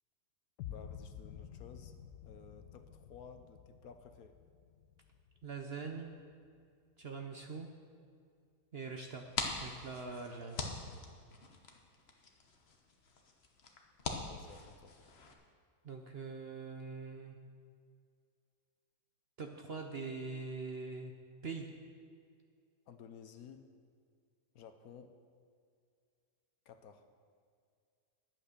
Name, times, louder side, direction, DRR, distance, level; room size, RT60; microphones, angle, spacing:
sound 1, 0.6-6.6, left 9 dB, 80° left, 1.2 m, -51 dB
voice 1, 0.7-1.9 2.2-4.4 14.3-15.0 22.9-23.7 24.5-25.2 26.7-27.1, left 6 dB, 65° left, 8 dB, 1.1 m, -54 dB
voice 2, 5.4-6.1 7.0-7.7 8.7-9.2 9.5-10.6 15.8-17.4 19.4-21.1 21.4-21.7, right 4 dB, 50° right, 3 dB, 0.8 m, -43 dB
sound 2, 9.0-15.3, left 3 dB, 45° left, 1.2 m, -43 dB
11.0 x 9.0 x 6.7 m, 2.2 s
omnidirectional pair, 1.7 m